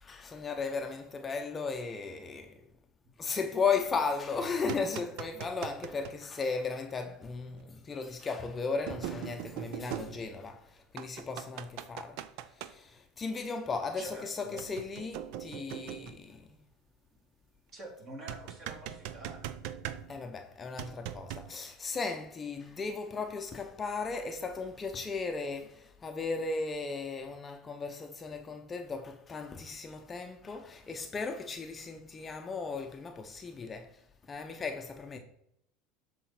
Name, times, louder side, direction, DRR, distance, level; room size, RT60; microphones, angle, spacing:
voice 1, 0.0-2.6 3.2-12.2 12.5-16.5 20.1-34.0 34.3-35.2, left 4 dB, 25° left, 0.7 m, -36 dB
sound 1, 4.4-6.2 7.6-7.7 8.9-10.6 11.0-12.7 14.6-16.3 18.3-20.4 20.8-21.5, right 11 dB, 65° right, 0.5 m, -41 dB
voice 2, 14.0-14.7 17.1-17.2 17.7-19.6 20.1-20.3, right 1 dB, 35° right, 3.2 m, -47 dB
12.5 x 4.1 x 4.3 m
supercardioid pair, 120°, 0 cm